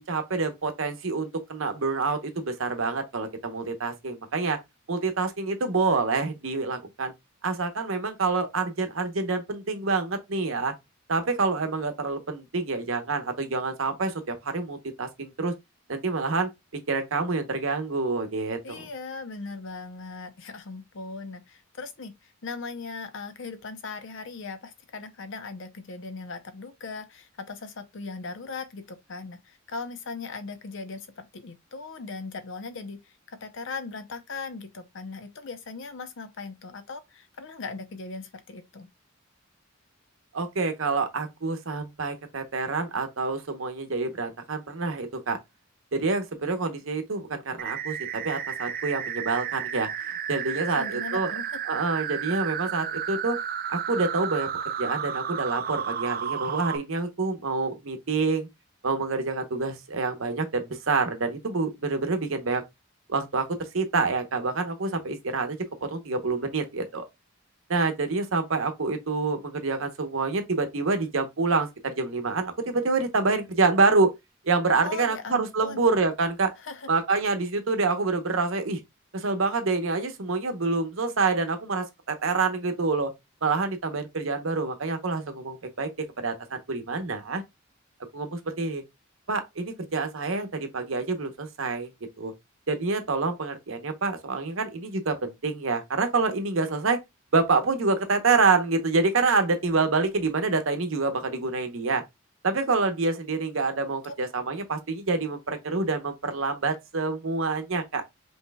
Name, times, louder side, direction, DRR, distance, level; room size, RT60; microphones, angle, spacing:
voice 1, 0.0-4.6 4.9-7.1 7.4-10.7 11.1-15.5 15.9-16.5 16.9-18.9 40.3-45.4 45.9-48.0 48.2-49.9 50.3-51.3 51.7-53.4 53.7-54.5 54.8-58.5 58.8-62.6 63.1-63.5 63.7-67.1 67.7-74.1 74.4-76.5 76.9-78.8 79.1-83.1 83.4-85.9 86.2-87.4 88.1-88.8 89.3-91.9 92.2-92.3 92.7-97.0 97.3-102.0 102.4-108.0, right 3 dB, 70° right, 0.9 m, -27 dB
voice 2, 18.6-38.9 50.7-51.6 74.8-75.8 76.6-76.9, left 4 dB, 60° left, 0.7 m, -39 dB
sound 1, 47.6-56.8, right 8 dB, 45° right, 0.5 m, -32 dB
5.3 x 3.1 x 2.3 m
head